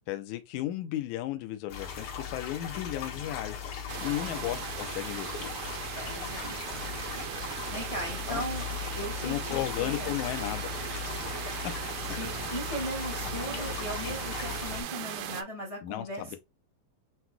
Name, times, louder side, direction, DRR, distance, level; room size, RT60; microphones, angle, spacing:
voice 1, 0.1-5.5 8.3-8.4 9.2-10.7 15.8-16.4, left 14 dB, 80° left, 1.8 m, -34 dB
sound 1, 1.7-14.8, left 7 dB, 60° left, 2.6 m, -38 dB
sound 2, 3.9-15.4, right 12 dB, 80° right, 1.8 m, -38 dB
voice 2, 4.0-4.5 5.9-6.9 7.7-8.6 8.9-10.1 12.2-16.4, equal, 45° left, 0.4 m, -38 dB
8.0 x 2.9 x 2.2 m
omnidirectional pair, 4.1 m